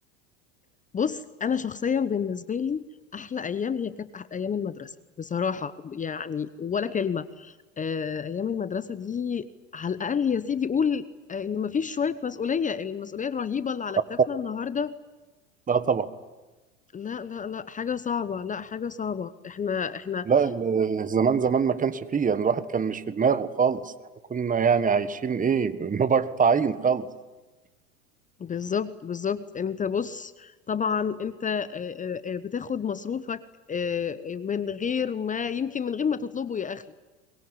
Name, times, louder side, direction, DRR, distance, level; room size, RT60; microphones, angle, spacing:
voice 1, 0.9-2.9 3.1-9.5 9.7-14.9 16.9-20.3 28.4-33.4 33.7-36.8, left 7 dB, 20° left, 15 dB, 0.9 m, -29 dB
voice 2, 15.7-16.1 20.3-23.9 24.3-27.1, right 6 dB, 20° right, 12 dB, 1.6 m, -23 dB
23.0 x 22.0 x 10.0 m, 1.2 s
hypercardioid pair, 80°, 36 cm